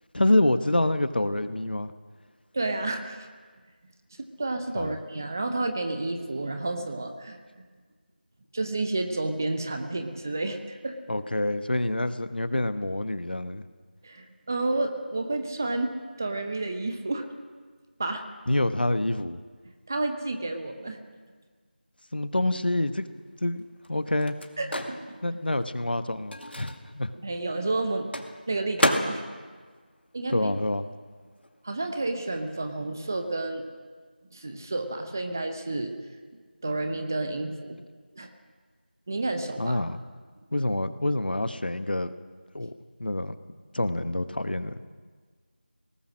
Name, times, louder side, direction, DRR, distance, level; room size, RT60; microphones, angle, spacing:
voice 1, 0.1-1.9 4.8-4.9 11.1-13.6 18.5-19.4 22.1-23.1 23.4-24.3 25.2-27.1 30.3-30.9 39.6-40.0 40.5-42.1 42.5-42.7 43.0-43.3 43.7-44.9, left 1 dB, 65° left, 11 dB, 1.2 m, -27 dB
voice 2, 2.5-3.3 4.2-7.4 8.5-11.0 14.0-17.3 18.0-18.2 19.9-21.0 24.6-25.2 27.2-28.1 28.5-29.2 30.1-30.5 31.6-33.6 34.3-35.9 36.6-37.8 38.1-38.3 39.1-39.8, right 2 dB, 20° right, 7 dB, 0.8 m, -30 dB
Microwave oven, 22.9-31.0 31.2-33.2, left 1 dB, 90° left, 2.3 m, -34 dB
22.0 x 19.0 x 6.4 m, 1.5 s
figure-of-eight pair, 175°, 6 cm